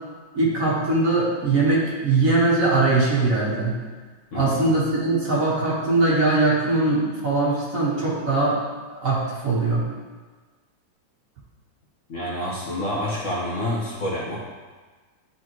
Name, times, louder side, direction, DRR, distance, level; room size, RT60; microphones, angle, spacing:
voice 1, 0.3-3.8 4.3-8.6 9.0-9.9, right 2 dB, 50° right, -6 dB, 1.7 m, -21 dB
voice 2, 4.3-4.7 12.1-14.4, left 1 dB, 45° left, -6 dB, 1.5 m, -28 dB
10.5 x 4.1 x 3.0 m, 1.4 s
omnidirectional pair, 2.0 m